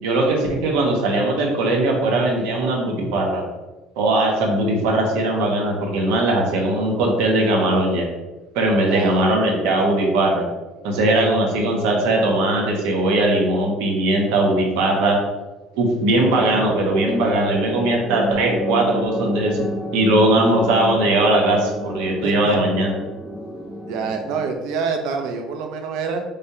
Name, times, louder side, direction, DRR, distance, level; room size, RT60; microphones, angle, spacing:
voice 1, 0.0-3.4 4.0-8.1 8.5-10.4 10.8-15.2 15.8-19.7 19.9-22.9, right 2 dB, 75° right, 0 dB, 1.1 m, -19 dB
voice 2, 8.9-9.3 22.2-22.6 23.9-26.2, right 5 dB, 60° right, 4 dB, 0.6 m, -26 dB
sound 1, 16.2-24.5, left 1 dB, 5° left, 0.3 m, -29 dB
5.2 x 3.3 x 2.8 m, 1.1 s
cardioid pair, 175°, 0 cm